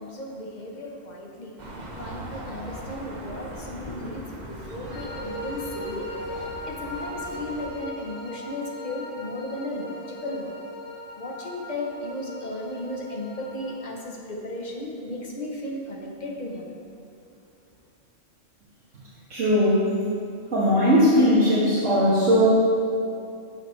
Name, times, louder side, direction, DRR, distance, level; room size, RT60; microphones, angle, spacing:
voice 1, 0.0-10.6 11.1-16.9, left 1 dB, 35° left, 0 dB, 1.1 m, -35 dB
sound 1, 1.6-7.7, right 1 dB, 35° right, 1.0 m, -39 dB
sound 2, 4.9-13.9, equal, 80° left, 1.6 m, -39 dB
voice 2, 19.3-19.8 20.5-22.5, equal, 75° right, -11 dB, 2.1 m, -19 dB
13.0 x 6.4 x 3.3 m, 2.5 s
omnidirectional pair, 1.3 m